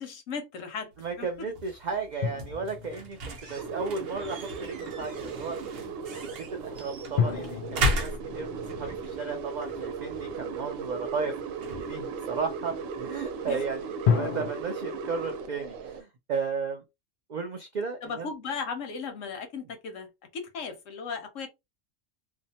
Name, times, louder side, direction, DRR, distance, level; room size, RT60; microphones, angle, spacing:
voice 1, 0.0-0.9 1.2-1.3 13.5-13.6 18.0-21.5, left 5 dB, 85° left, 1.1 m, -36 dB
sound 1, 0.9-13.7, equal, 55° right, 0.8 m, -37 dB
voice 2, 1.0-5.6 6.2-11.3 11.6-16.8 17.3-18.3, right 4 dB, 75° right, 0.4 m, -34 dB
sound 2, 2.2-4.2 7.2-10.4 14.0-14.5, left 7 dB, 60° left, 0.6 m, -31 dB
sound 3, 3.6-16.0, right 5 dB, 90° right, 1.0 m, -37 dB
2.7 x 2.1 x 2.7 m
omnidirectional pair, 1.3 m